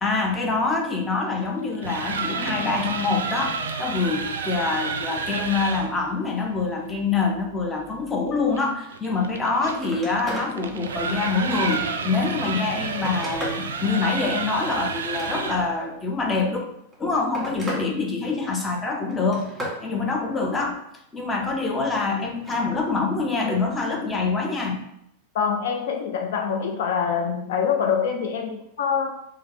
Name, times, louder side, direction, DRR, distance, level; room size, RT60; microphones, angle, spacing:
voice 1, 0.0-16.6 17.0-19.5 19.8-20.8 21.1-24.8, left 4 dB, 15° left, 1 dB, 0.6 m, -25 dB
sound 1, 1.6-5.9 8.5-15.8, right 4 dB, 65° right, 0.3 m, -30 dB
Telephone, 9.8-10.5 11.0-12.1 12.7-13.7 14.9-15.7 16.7-17.9 18.2-18.7 19.1-19.8 22.3-22.6 24.0-24.1, equal, 10° right, 1.4 m, -35 dB
voice 2, 25.3-29.1, left 7 dB, 55° left, 3 dB, 0.3 m, -25 dB
3.1 x 2.7 x 3.4 m, 0.76 s
figure-of-eight pair, 90°, 0 cm